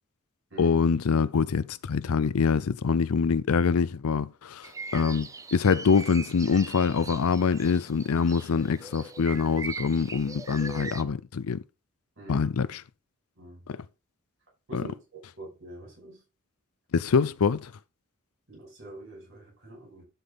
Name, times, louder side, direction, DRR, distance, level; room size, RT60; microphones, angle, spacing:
voice 1, 0.6-4.7 4.9-11.6 12.3-12.8 13.7-13.8 14.7-14.8 16.9-17.7, left 5 dB, 80° left, 0.5 m, -25 dB
sound 1, 4.6-11.0, right 4 dB, 15° right, 0.5 m, -41 dB
voice 2, 12.2-12.5 13.4-13.7 14.7-16.2 18.5-20.1, right 2 dB, 55° right, 6.2 m, -45 dB
11.5 x 5.4 x 4.0 m
head